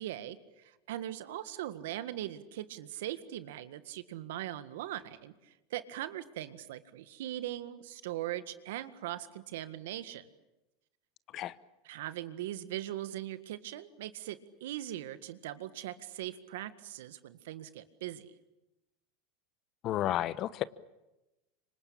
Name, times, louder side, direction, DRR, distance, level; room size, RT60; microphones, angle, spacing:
voice 1, 0.0-10.3 11.9-18.3, right 13 dB, 75° right, 12 dB, 1.7 m, -40 dB
voice 2, 19.8-20.6, left 13 dB, 45° left, 17 dB, 1.1 m, -31 dB
26.0 x 25.0 x 8.7 m, 0.99 s
hypercardioid pair, 110°, 0 cm